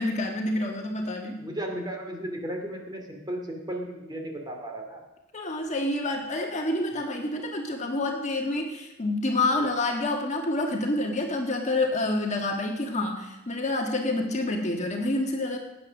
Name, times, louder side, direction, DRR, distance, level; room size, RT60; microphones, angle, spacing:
voice 1, 0.0-1.4 5.3-15.6, left 2 dB, 35° left, 2 dB, 1.5 m, -28 dB
voice 2, 1.4-5.0, right 1 dB, 20° right, 2 dB, 2.5 m, -35 dB
18.0 x 8.8 x 6.4 m, 1.0 s
head